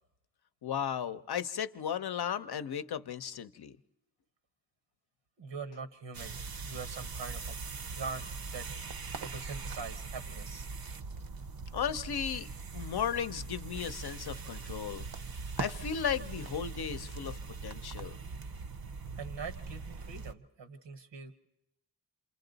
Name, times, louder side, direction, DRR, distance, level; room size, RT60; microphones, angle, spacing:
voice 1, 0.6-3.8 11.7-15.0 15.6-18.2, left 8 dB, 65° left, 0.7 m, -35 dB
voice 2, 5.4-6.3 6.6-7.5 7.9-8.7 9.2-10.7 19.2-21.4, right 5 dB, 85° right, 1.1 m, -43 dB
sound 1, 6.1-20.3, right 4 dB, 60° right, 0.7 m, -41 dB
28.0 x 26.0 x 4.0 m
cardioid pair, 55°, 42 cm